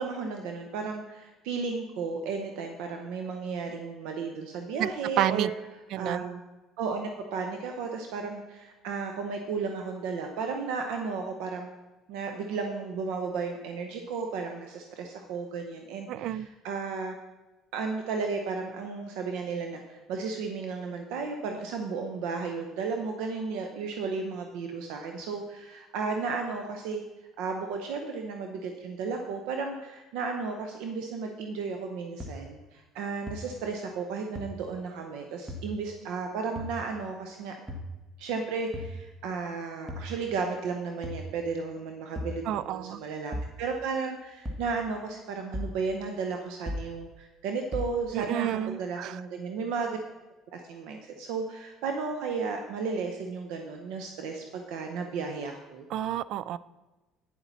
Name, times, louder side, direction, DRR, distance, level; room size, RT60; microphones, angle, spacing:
voice 1, 0.0-5.5 6.0-6.4 6.8-11.7 12.1-17.1 17.7-27.0 27.4-37.5 38.2-50.0 50.5-55.8, right 4 dB, 80° right, 4 dB, 0.8 m, -34 dB
voice 2, 4.8-5.5 5.9-6.2 16.1-16.5 42.5-43.0 48.1-49.2 55.9-56.6, right 12 dB, 65° right, 17 dB, 0.3 m, -30 dB
sound 1, 32.2-32.3 33.3-33.4 34.4-34.5 35.5-35.6 36.6-36.7 37.7-37.9 38.7-39.0 39.9-40.1 41.0-41.3 42.2-42.4 43.3-43.5 44.5-44.7 45.5-45.8 46.7-46.9 47.7-47.9, left 1 dB, 5° right, 1.4 m, -35 dB
9.5 x 7.3 x 4.1 m, 1.1 s
cardioid pair, 110°, 0 cm